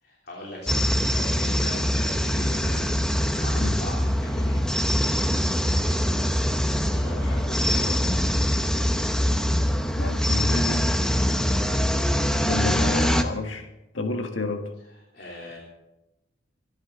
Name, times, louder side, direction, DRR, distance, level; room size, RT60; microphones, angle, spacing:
voice 1, 0.0-4.7 6.5-8.3 11.6-11.8 14.8-15.6, left 1 dB, 55° left, -3 dB, 3.2 m, -40 dB
sound 1, 0.7-13.2, equal, 5° left, 0.9 m, -23 dB
voice 2, 10.0-10.8 12.5-13.7 13.9-14.6, left 3 dB, 85° left, 5 dB, 1.8 m, -30 dB
25.5 x 11.0 x 3.9 m, 0.95 s
head